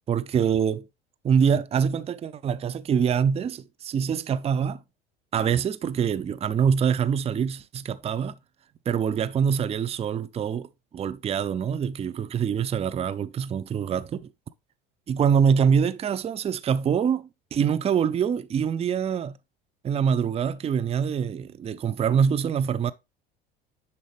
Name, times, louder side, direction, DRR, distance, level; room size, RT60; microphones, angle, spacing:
voice 1, 0.1-0.9 1.2-4.8 5.3-8.4 8.9-14.3 15.1-19.4 19.8-22.9, right 7 dB, 20° right, 0.5 m, -25 dB
10.0 x 4.2 x 3.2 m
hypercardioid pair, 70°, 29 cm